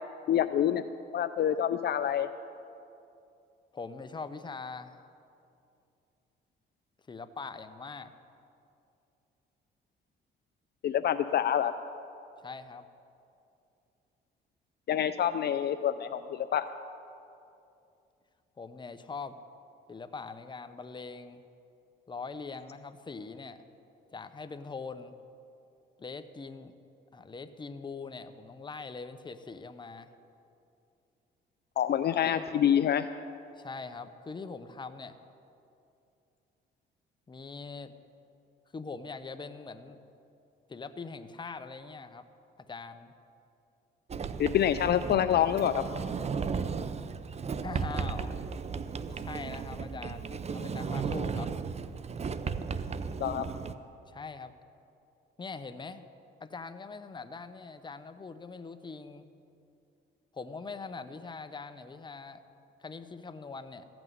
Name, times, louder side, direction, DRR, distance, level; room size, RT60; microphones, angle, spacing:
voice 1, 0.3-0.8 1.1-2.3 10.8-11.7 14.9-16.7 31.8-33.1 44.4-45.8 53.2-53.5, left 10 dB, 55° left, 10 dB, 0.4 m, -27 dB
voice 2, 3.7-5.0 7.1-8.1 12.4-12.8 18.6-19.4 19.9-21.4 22.1-23.6 24.1-25.2 26.0-26.7 27.1-30.1 32.3-32.5 33.6-35.2 37.3-37.9 38.7-40.0 40.7-42.3 42.6-43.1 47.6-48.4 49.1-51.5 54.1-54.5 55.4-56.0 56.4-59.3 60.3-62.4 62.8-63.9, left 4 dB, 25° left, 10 dB, 0.7 m, -42 dB
Sliding door, 44.1-53.7, right 5 dB, 35° right, 0.5 m, -35 dB
15.0 x 6.1 x 9.2 m, 2.6 s
cardioid pair, 90°, 20 cm